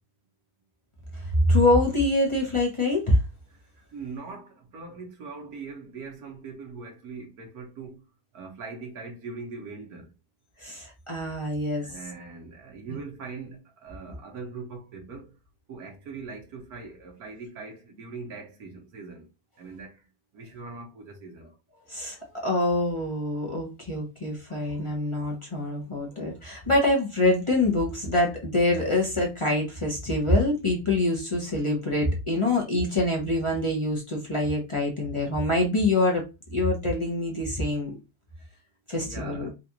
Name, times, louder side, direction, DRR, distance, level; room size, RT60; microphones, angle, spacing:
voice 1, 1.1-3.2 10.6-11.9 12.9-13.0 21.9-36.2 36.5-37.9 38.9-39.5, left 1 dB, 25° left, 0.7 m, -25 dB
voice 2, 3.9-8.0 8.3-10.0 11.8-15.3 15.7-19.2 19.6-19.9 20.3-21.5 39.0-39.5, right 4 dB, 65° right, 1.5 m, -41 dB
4.0 x 2.5 x 2.9 m
omnidirectional pair, 1.8 m